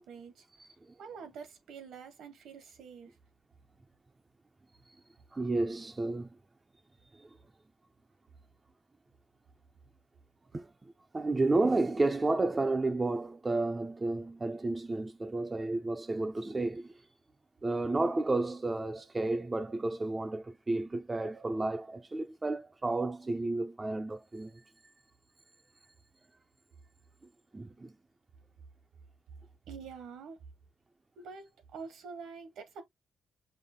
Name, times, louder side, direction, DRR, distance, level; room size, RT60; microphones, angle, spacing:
voice 1, 0.0-0.4 1.0-3.1 29.7-30.4 31.2-32.8, right 5 dB, 85° right, 1.4 m, -46 dB
voice 2, 0.6-0.9 5.3-6.3 7.2-7.3 10.5-16.9 17.6-24.6 27.5-27.9, right 2 dB, 20° right, 0.5 m, -32 dB
5.6 x 2.1 x 3.7 m
cardioid pair, 135°, 0 cm